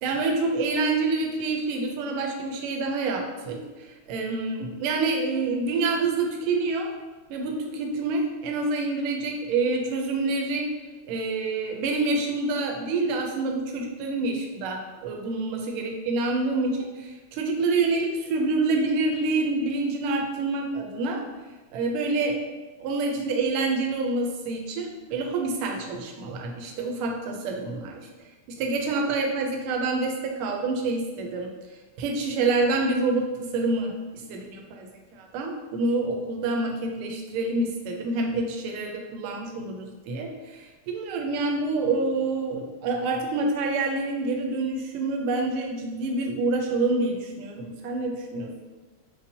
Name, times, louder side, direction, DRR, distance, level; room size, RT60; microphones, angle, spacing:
voice 1, 0.0-6.9 7.3-10.7 11.1-21.2 21.7-22.4 22.8-28.0 28.5-31.5 32.0-48.5, right 3 dB, 80° right, 1 dB, 1.4 m, -27 dB
5.5 x 2.1 x 2.6 m, 1.2 s
omnidirectional pair, 2.4 m